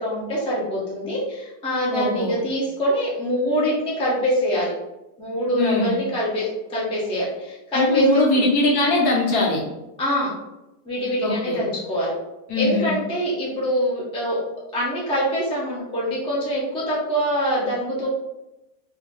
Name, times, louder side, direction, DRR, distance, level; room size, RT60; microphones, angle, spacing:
voice 1, 0.0-4.7 5.2-8.2 10.0-10.4 10.8-12.1 12.5-14.4 14.7-18.1, equal, 5° left, -7 dB, 0.6 m, -24 dB
voice 2, 1.9-2.3 5.6-6.0 7.7-9.6 11.2-11.6 12.5-13.0, left 2 dB, 65° left, -3 dB, 1.2 m, -21 dB
2.8 x 2.7 x 3.7 m, 0.96 s
omnidirectional pair, 2.0 m